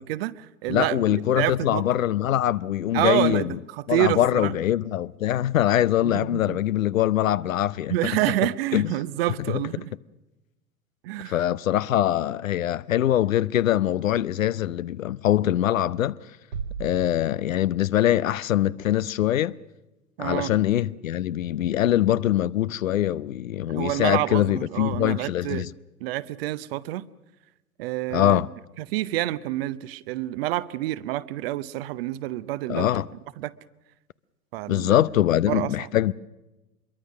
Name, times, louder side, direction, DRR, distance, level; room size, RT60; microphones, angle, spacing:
voice 1, 0.0-1.8 2.9-4.6 6.0-6.6 7.9-9.9 11.0-11.4 20.2-20.5 23.7-25.6 26.0-27.0 27.8-28.4 28.8-32.9 33.4-33.5 34.5-35.0 35.5-35.9, right 15 dB, 40° right, 0.8 m, -28 dB
voice 2, 0.7-3.6 3.9-8.1 8.7-8.9 9.5-9.6 11.3-16.2 16.8-19.5 20.2-25.7 28.1-28.5 32.7-33.1 34.7-36.1, left 12 dB, 65° left, 0.7 m, -23 dB
sound 1, 16.5-18.5, right 6 dB, 65° right, 1.4 m, -38 dB
25.5 x 22.5 x 6.4 m
figure-of-eight pair, 95°, 44 cm